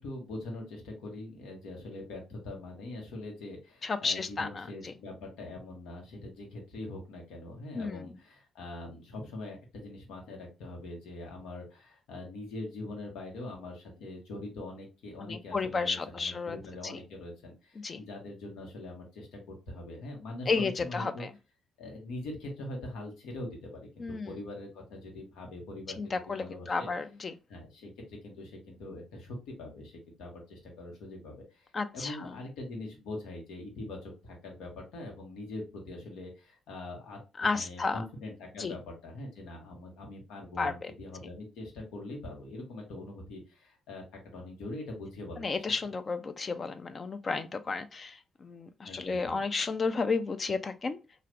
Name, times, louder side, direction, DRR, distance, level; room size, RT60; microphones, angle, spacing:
voice 1, 0.0-21.2 21.8-26.9 27.5-45.5 48.8-49.4, left 2 dB, 90° left, 1.2 m, -43 dB
voice 2, 3.8-4.9 7.7-8.0 15.2-16.6 16.8-17.0 17.8-18.0 20.5-21.3 24.0-24.3 26.0-27.3 31.7-32.3 37.4-38.0 38.6-38.7 40.6-40.7 45.4-51.0, left 4 dB, 40° left, 0.3 m, -32 dB
3.2 x 2.4 x 2.5 m
cardioid pair, 90°, 0 cm